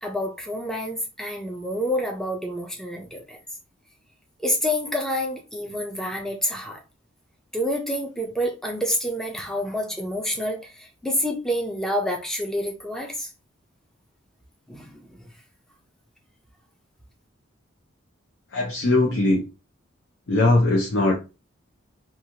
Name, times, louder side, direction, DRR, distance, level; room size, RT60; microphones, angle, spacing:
voice 1, 0.0-3.4 4.4-6.8 7.5-13.3 14.7-15.2, equal, ahead, 0.4 m, -28 dB
voice 2, 18.5-19.4 20.3-21.1, left 2 dB, 70° left, 0.7 m, -20 dB
3.0 x 2.3 x 2.8 m
head